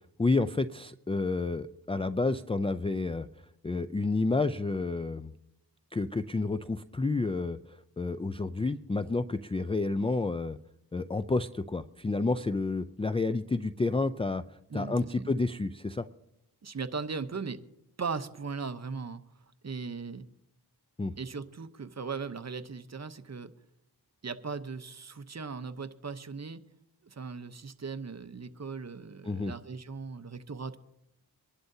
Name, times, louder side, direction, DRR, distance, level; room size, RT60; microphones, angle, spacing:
voice 1, 0.2-3.3 3.6-5.3 5.9-10.6 10.9-14.4 14.7-16.1 21.0-21.1 29.2-29.5, left 3 dB, 15° left, 12 dB, 0.4 m, -30 dB
voice 2, 14.7-15.3 16.6-17.6 18.0-19.2 19.6-20.3 21.2-23.5 24.2-26.6 27.0-30.8, right 5 dB, 40° right, 10 dB, 0.8 m, -38 dB
24.5 x 11.5 x 2.7 m, 0.85 s
cardioid pair, 60°, 40 cm